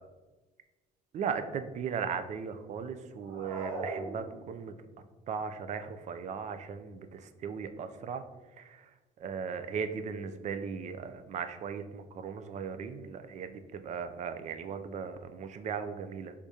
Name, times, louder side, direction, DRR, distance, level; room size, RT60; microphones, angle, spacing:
voice 1, 1.1-4.7 5.3-8.2 8.6-8.8 9.2-16.3, right 6 dB, 45° right, 9 dB, 0.4 m, -37 dB
sound 1, 3.2-4.8, right 3 dB, 90° right, 0.7 m, -39 dB
4.9 x 3.5 x 2.7 m, 1.3 s
cardioid pair, 110°, 17 cm